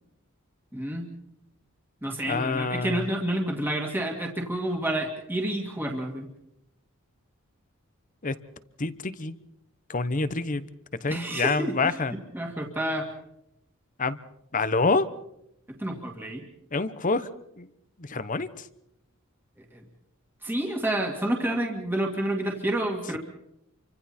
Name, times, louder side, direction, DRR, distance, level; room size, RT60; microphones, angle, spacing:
voice 1, 0.7-1.2 2.0-6.3 11.1-13.1 15.8-16.4 19.7-19.8 20.4-23.2, right 1 dB, 10° right, 0 dB, 2.3 m, -29 dB
voice 2, 2.3-3.0 8.2-8.4 8.8-9.4 9.9-10.7 11.0-12.1 14.0-14.2 14.5-15.1 16.7-17.3 17.6-17.7 18.0-18.6, left 3 dB, 40° left, 14 dB, 1.0 m, -27 dB
29.0 x 25.0 x 4.4 m, 0.82 s
head